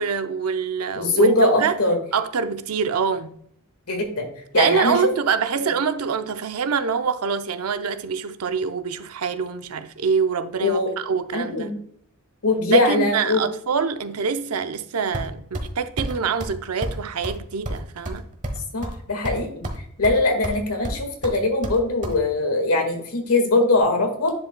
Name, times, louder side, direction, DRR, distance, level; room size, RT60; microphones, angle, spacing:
voice 1, 0.0-1.8 2.1-3.3 4.5-11.7 12.7-18.3, right 6 dB, 75° right, 0.6 m, -25 dB
voice 2, 0.9-2.0 3.9-4.3 4.5-5.1 5.6-5.7 10.6-10.9 11.3-11.8 12.4-13.4 18.7-19.6 20.0-24.3, left 2 dB, 80° left, 1.7 m, -21 dB
sound 1, 15.1-15.7 16.0-16.1 16.4-16.6 16.8-17.0 17.2-17.4 17.7-19.0 19.2-19.8 20.0-20.6 20.8-22.2, right 1 dB, 35° right, 1.1 m, -30 dB
10.5 x 5.1 x 2.2 m
head